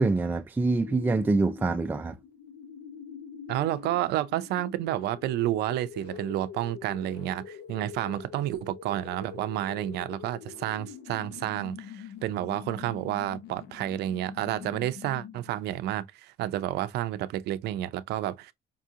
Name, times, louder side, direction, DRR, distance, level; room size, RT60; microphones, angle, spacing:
voice 1, 0.0-2.2, right 3 dB, 10° right, 0.4 m, -25 dB
sound 1, 0.8-15.6, left 8 dB, 80° left, 0.8 m, -44 dB
voice 2, 3.5-18.5, right 13 dB, 80° right, 0.5 m, -30 dB
5.3 x 2.7 x 2.4 m
cardioid pair, 110°, 17 cm